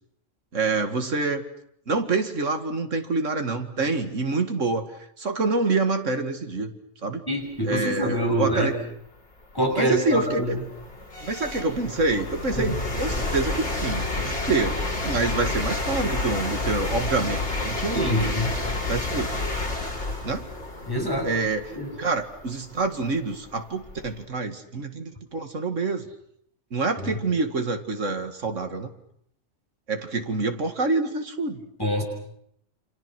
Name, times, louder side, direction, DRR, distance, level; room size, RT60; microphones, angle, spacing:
voice 1, 0.5-1.4 1.9-4.9 5.2-6.7 7.0-7.2 7.6-8.7 9.8-10.6 11.2-18.6 18.9-19.3 20.2-20.4 21.2-21.7 22.0-26.1 26.7-28.9 29.9-31.6, right 3 dB, 75° right, 7 dB, 2.4 m, -27 dB
voice 2, 7.3-8.8 9.5-10.6 12.6-12.8 17.9-18.6 20.9-21.3 21.8-22.0 27.0-27.2 31.8-32.0, equal, 15° left, 1 dB, 6.4 m, -25 dB
sound 1, 8.7-8.8 9.4-24.2, left 2 dB, 60° left, 5.0 m, -30 dB
29.0 x 26.5 x 6.2 m, 0.70 s
omnidirectional pair, 1.3 m